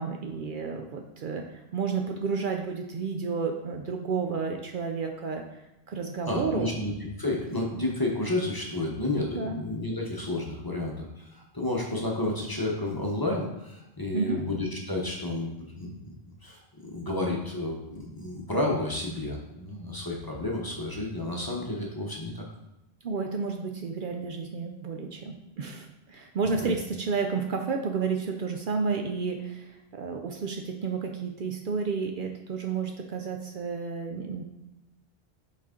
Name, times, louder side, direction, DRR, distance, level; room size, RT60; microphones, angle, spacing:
voice 1, 0.0-5.4 5.9-6.8 9.3-9.6 14.1-14.4 23.0-34.4, right 5 dB, 60° right, 3 dB, 0.7 m, -31 dB
voice 2, 6.2-6.9 7.2-16.1 16.4-22.4 26.6-26.7, left 2 dB, 25° left, -2 dB, 0.9 m, -31 dB
6.0 x 4.3 x 3.7 m, 0.94 s
omnidirectional pair, 1.1 m